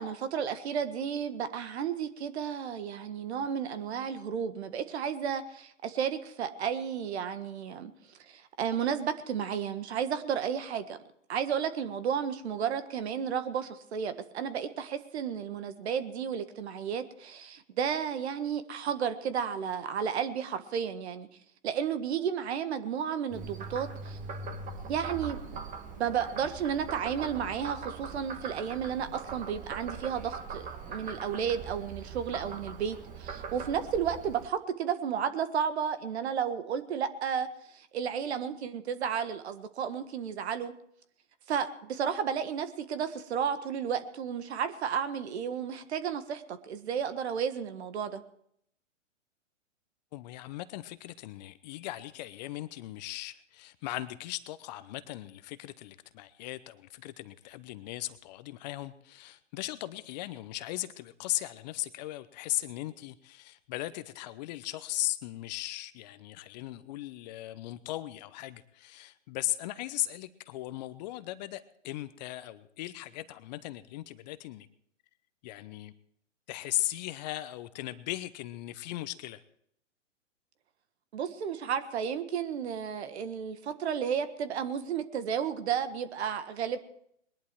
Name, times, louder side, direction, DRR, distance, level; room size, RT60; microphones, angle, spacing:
voice 1, 0.0-7.9 8.3-11.0 11.3-21.3 21.6-24.2 24.9-25.6 25.9-40.7 41.5-48.2 81.1-86.8, right 7 dB, 60° right, 11 dB, 1.6 m, -32 dB
Frog, 23.3-34.5, right 5 dB, 20° right, 1.8 m, -41 dB
voice 2, 50.1-74.7 75.4-75.9 76.5-79.4, left 16 dB, 35° left, 14 dB, 0.8 m, -38 dB
21.0 x 11.5 x 4.6 m, 0.70 s
hypercardioid pair, 125°, 37 cm